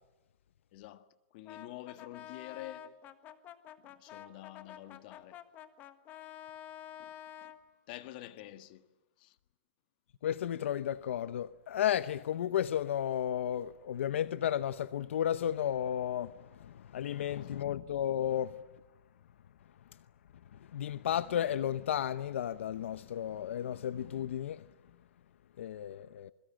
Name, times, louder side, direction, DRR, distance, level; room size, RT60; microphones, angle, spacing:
voice 1, 0.7-1.1 1.3-3.0 3.8-5.4 7.0-7.1 7.4-7.5 7.9-8.9 9.2-9.4, left 14 dB, 40° left, 1.6 m, -48 dB
Brass instrument, 1.5-7.6, left 11 dB, 25° left, 1.5 m, -49 dB
voice 2, 10.2-18.6 20.7-24.6 25.6-26.3, left 10 dB, 75° left, 0.8 m, -33 dB
28.0 x 22.0 x 8.9 m
hypercardioid pair, 160°, 7 cm